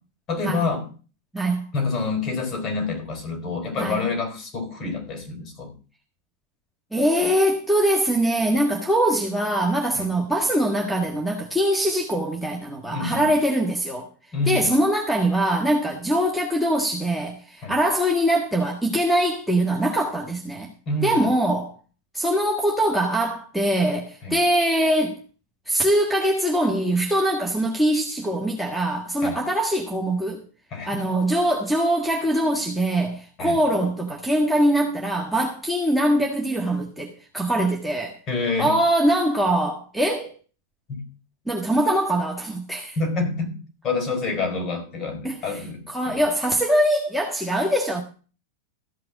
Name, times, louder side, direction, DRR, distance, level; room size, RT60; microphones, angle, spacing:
voice 1, 0.3-0.9 1.7-5.7 9.9-10.1 12.9-13.3 14.3-14.8 17.6-17.7 20.9-21.3 24.2-24.4 29.2-29.4 30.7-31.0 33.4-33.6 38.3-38.7 40.9-41.0 43.0-43.5 43.8-46.2, left 3 dB, 30° left, 4.5 m, -27 dB
voice 2, 6.9-14.1 14.5-20.7 21.0-21.7 22.1-25.2 25.7-30.4 30.9-38.2 38.6-40.3 41.5-43.0 45.2-48.0, right 1 dB, ahead, 1.7 m, -22 dB
14.0 x 5.8 x 7.2 m
figure-of-eight pair, 90°, 0 cm